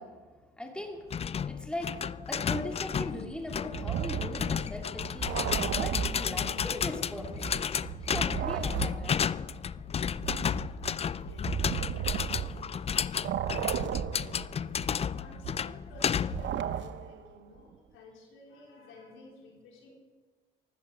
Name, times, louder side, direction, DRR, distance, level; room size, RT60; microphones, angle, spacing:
voice 1, 0.0-2.0 2.3-7.5 8.0-9.3, left 1 dB, 5° left, 2 dB, 2.4 m, -39 dB
sound 1, 1.1-16.5, left 7 dB, 30° left, 0.3 m, -32 dB
sound 2, 3.7-6.8 7.1-12.9 13.2-17.3, right 9 dB, 70° right, 0.7 m, -35 dB
voice 2, 11.0-14.5 15.1-20.0, left 2 dB, 90° left, 0 dB, 3.9 m, -54 dB
14.0 x 13.0 x 6.0 m, 1.4 s
cardioid pair, 90°, 20 cm